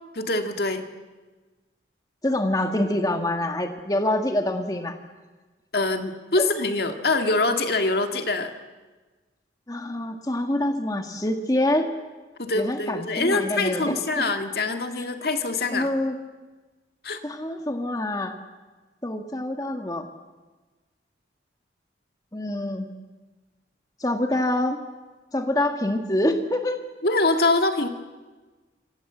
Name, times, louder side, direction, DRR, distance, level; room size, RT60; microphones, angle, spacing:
voice 1, 0.2-0.9 5.7-8.5 12.4-15.9 17.0-17.2 27.0-27.9, left 2 dB, 55° left, 6 dB, 2.1 m, -24 dB
voice 2, 2.2-5.0 6.4-6.5 9.7-11.9 12.5-14.2 15.7-16.2 17.2-18.3 19.0-20.0 22.3-22.9 24.0-24.8 25.3-26.8, left 1 dB, 20° left, 5 dB, 1.6 m, -26 dB
27.0 x 24.5 x 8.0 m, 1.3 s
head